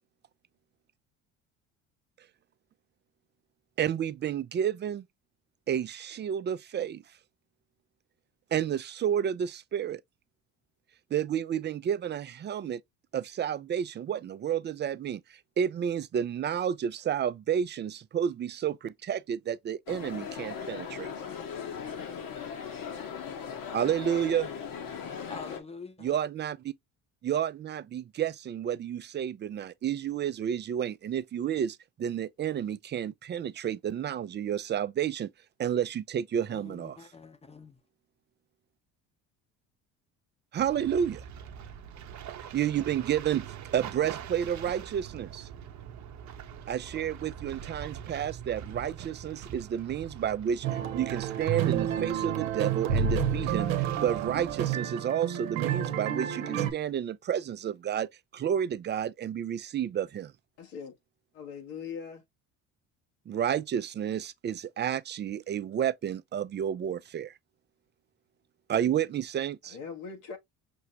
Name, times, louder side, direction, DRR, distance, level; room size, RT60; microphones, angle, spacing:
voice 1, 3.8-5.0 5.7-7.0 8.5-10.0 11.1-12.8 13.1-15.2 15.6-21.2 23.7-24.5 26.0-26.7 27.2-35.3 35.6-37.0 40.5-41.2 42.5-43.4 43.7-45.5 46.7-50.7 50.9-60.3 63.3-67.3 68.7-69.8, right 9 dB, 30° right, 0.4 m, -31 dB
sound 1, 19.9-25.6, left 7 dB, 60° left, 1.3 m, -38 dB
voice 2, 25.3-26.2 36.5-37.8, left 4 dB, 15° left, 0.8 m, -45 dB
sound 2, 40.6-54.7, right 8 dB, 45° right, 0.8 m, -44 dB
sound 3, 50.6-56.7, right 8 dB, 85° right, 0.8 m, -30 dB
voice 3, 60.6-61.0 61.3-62.2 69.7-70.4, left 6 dB, 85° left, 1.6 m, -40 dB
6.1 x 2.1 x 2.8 m
hypercardioid pair, 70°, 39 cm